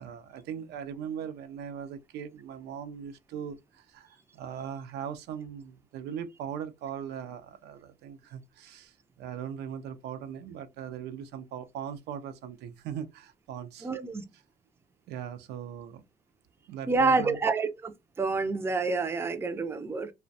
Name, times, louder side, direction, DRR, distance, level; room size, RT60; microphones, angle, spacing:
voice 1, 0.0-13.9 14.3-14.4 15.1-16.0 16.7-17.4, right 8 dB, 75° right, 0.4 m, -39 dB
voice 2, 13.8-14.2 16.9-20.1, right 3 dB, 15° right, 0.3 m, -28 dB
2.4 x 2.1 x 2.5 m
cardioid pair, 110°, 17 cm